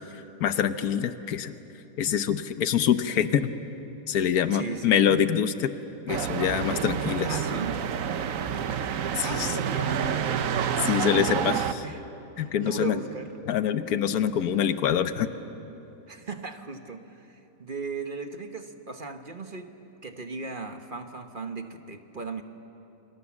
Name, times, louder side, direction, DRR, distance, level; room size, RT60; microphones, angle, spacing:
voice 1, 0.4-1.5 2.0-3.5 4.1-5.7 6.1-7.4 9.1-9.6 10.8-11.6 12.4-13.0 13.5-15.3, left 9 dB, 85° left, 10 dB, 1.4 m, -25 dB
voice 2, 4.5-5.0 7.3-7.8 9.2-10.5 11.2-12.0 12.4-13.3 16.1-19.7 20.0-22.4, right 4 dB, 40° right, 6 dB, 1.2 m, -37 dB
sound 1, 6.1-11.7, right 8 dB, 65° right, 1.2 m, -28 dB
29.0 x 25.0 x 7.2 m, 3.0 s
omnidirectional pair, 1.5 m